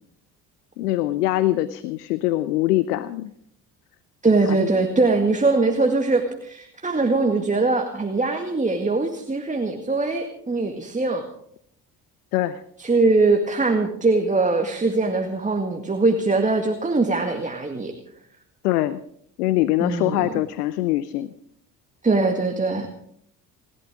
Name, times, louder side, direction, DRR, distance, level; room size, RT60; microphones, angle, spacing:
voice 1, 0.8-3.3 4.5-4.7 12.3-12.6 18.6-19.0 19.4-21.3, left 15 dB, 70° left, 15 dB, 0.8 m, -23 dB
voice 2, 4.2-11.3 12.8-17.9 19.8-20.3 22.0-22.9, right 3 dB, 15° right, 4 dB, 2.0 m, -22 dB
28.5 x 12.0 x 3.7 m, 0.68 s
figure-of-eight pair, 50°, 48 cm